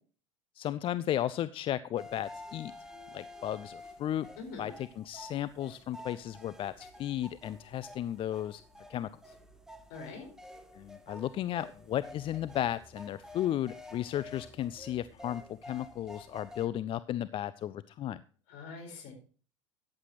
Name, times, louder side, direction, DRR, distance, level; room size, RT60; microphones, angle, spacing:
voice 1, 0.5-2.7 3.1-4.3 4.6-8.6 8.9-9.3 10.7-18.2, left 12 dB, 35° left, 16 dB, 0.5 m, -34 dB
sound 1, 2.0-16.7, left 1 dB, 5° right, 1.5 m, -50 dB
voice 2, 4.4-4.7 9.9-10.3 18.5-19.1, left 4 dB, 55° left, 5 dB, 4.4 m, -44 dB
14.0 x 9.7 x 3.0 m, 0.40 s
figure-of-eight pair, 75°, 16 cm